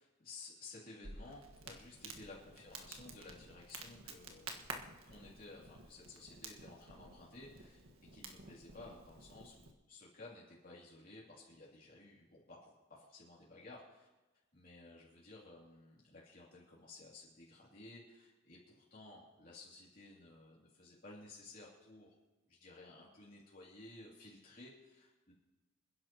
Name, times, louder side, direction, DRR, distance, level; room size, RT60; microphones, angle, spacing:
voice 1, 0.0-4.7 5.1-7.8 8.1-14.1 14.5-22.1 22.5-25.3, left 2 dB, 45° left, -6 dB, 2.8 m, -55 dB
Crackle, 1.0-9.7, right 3 dB, 85° right, 1.6 m, -51 dB
27.5 x 10.5 x 3.0 m, 1.1 s
head